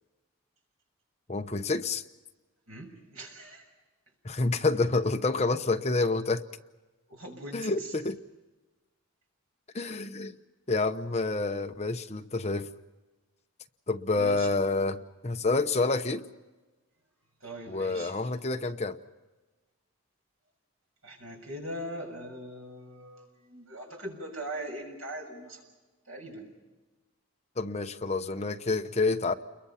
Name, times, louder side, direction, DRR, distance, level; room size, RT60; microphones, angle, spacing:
voice 1, 1.3-2.0 4.2-6.4 7.5-8.2 9.7-10.3 10.7-12.7 13.9-16.2 17.7-19.0 27.6-29.3, left 3 dB, 30° left, 7 dB, 0.9 m, -28 dB
voice 2, 2.7-3.7 7.1-7.7 14.1-14.5 17.4-18.1 21.0-25.6 26.1-26.5, right 1 dB, 75° right, 2 dB, 6.8 m, -41 dB
29.5 x 22.5 x 5.8 m, 1.2 s
head